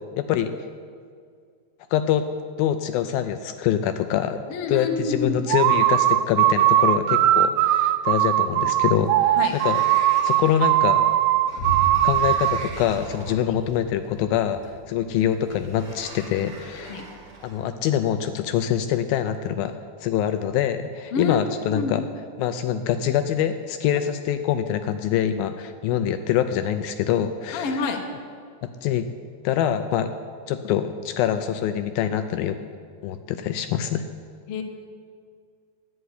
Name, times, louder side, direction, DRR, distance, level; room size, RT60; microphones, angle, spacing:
voice 1, 0.2-0.5 1.9-2.2 2.6-4.4 4.7-9.8 10.2-11.1 12.0-17.0 17.4-19.7 20.0-22.0 22.4-27.9 28.6-29.1 29.4-30.1 30.5-32.6 33.0-34.0, left 10 dB, 85° left, 9 dB, 2.2 m, -25 dB
voice 2, 4.5-5.4 9.4-9.6 16.9-17.0 21.1-21.4 21.6-21.9 27.5-28.0 34.5-34.6, left 4 dB, 65° left, 3 dB, 1.4 m, -27 dB
sound 1, 5.5-12.7, right 13 dB, 85° right, 2.0 m, -20 dB
Sliding door, 9.4-17.6, right 3 dB, 45° right, 2.2 m, -44 dB
Boom, 11.6-19.4, right 3 dB, 15° right, 1.1 m, -37 dB
11.0 x 9.1 x 9.8 m, 2.1 s
omnidirectional pair, 4.5 m